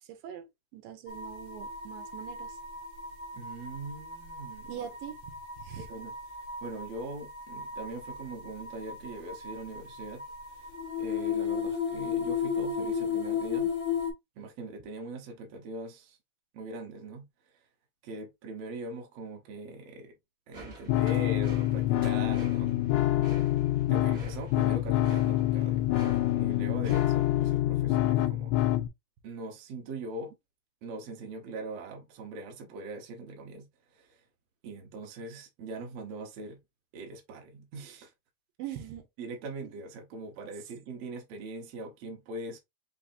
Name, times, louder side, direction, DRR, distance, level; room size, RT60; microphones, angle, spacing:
voice 1, 0.0-2.6 4.7-5.9 26.8-27.0 38.6-39.1 39.6-39.7, right 10 dB, 80° right, 2.5 m, -43 dB
sound 1, 1.1-14.1, left 6 dB, 55° left, 0.8 m, -35 dB
voice 2, 3.3-4.9 5.8-6.1 6.6-10.2 11.0-13.7 14.4-16.2 16.5-17.3 18.0-20.2 20.5-22.7 23.9-25.9 26.4-28.7 29.2-30.4 30.8-33.7 33.9-34.2 34.6-36.6 36.9-38.1 39.2-42.6, right 2 dB, 60° right, 1.8 m, -41 dB
sound 2, 20.5-27.6, equal, 45° right, 0.8 m, -48 dB
sound 3, 20.9-28.9, left 15 dB, 85° left, 1.6 m, -26 dB
5.4 x 3.4 x 2.6 m
omnidirectional pair, 4.0 m